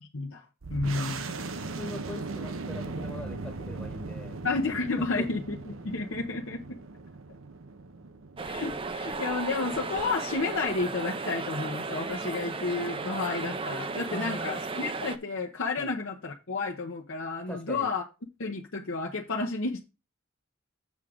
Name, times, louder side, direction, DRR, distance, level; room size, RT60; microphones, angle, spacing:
voice 1, 0.1-0.4 0.7-1.2 4.4-6.8 8.4-18.0 18.4-19.8, left 3 dB, 65° left, 0.9 m, -31 dB
sound 1, 0.6-9.8, right 3 dB, 70° right, 0.8 m, -39 dB
voice 2, 1.7-4.4 5.0-5.3 14.1-14.6 15.8-15.9 17.5-17.9, left 1 dB, 5° left, 1.1 m, -41 dB
sound 2, 8.4-15.2, right 4 dB, 25° right, 0.5 m, -35 dB
7.4 x 3.7 x 6.4 m
head